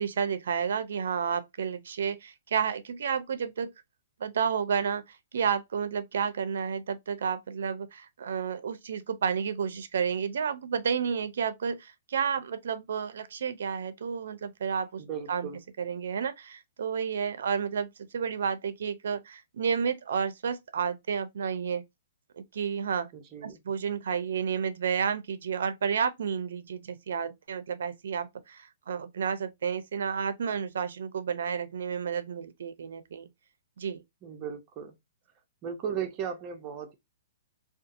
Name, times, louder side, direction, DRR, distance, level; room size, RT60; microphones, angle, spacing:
voice 1, 0.0-3.7 4.2-5.0 5.3-15.0 15.3-15.5 15.8-17.9 18.1-21.8 22.4-23.1 23.4-33.3 33.8-34.0, right 7 dB, 75° right, 0.4 m, -31 dB
voice 2, 15.0-15.6 23.1-23.6 34.2-34.9 35.6-36.9, right 7 dB, 25° right, 0.5 m, -36 dB
2.6 x 2.3 x 2.5 m
hypercardioid pair, 155°, 0 cm